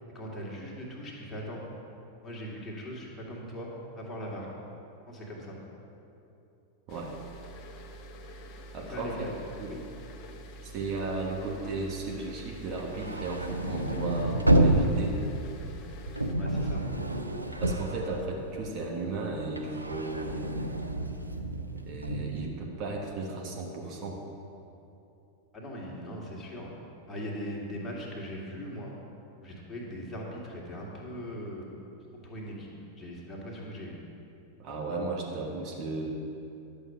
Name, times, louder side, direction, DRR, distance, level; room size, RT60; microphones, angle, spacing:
voice 1, 0.1-1.6 2.2-4.5 5.1-5.6 8.9-9.3 9.7-9.8 16.3-16.9 25.5-26.7 27.1-28.9 29.4-31.8 32.1-34.0, equal, 15° left, -3 dB, 2.2 m, -40 dB
sound 1, 6.9-16.3, equal, 35° left, 0.8 m, -46 dB
voice 2, 8.7-9.3 9.6-9.8 10.6-15.2 17.6-20.6 21.8-24.2 34.6-36.2, right 3 dB, 35° right, -1 dB, 1.4 m, -35 dB
sound 2, 12.7-18.8 19.1-22.4, right 1 dB, 85° right, 0.6 m, -29 dB
11.0 x 7.0 x 5.7 m, 2.8 s
figure-of-eight pair, 90°, 0 cm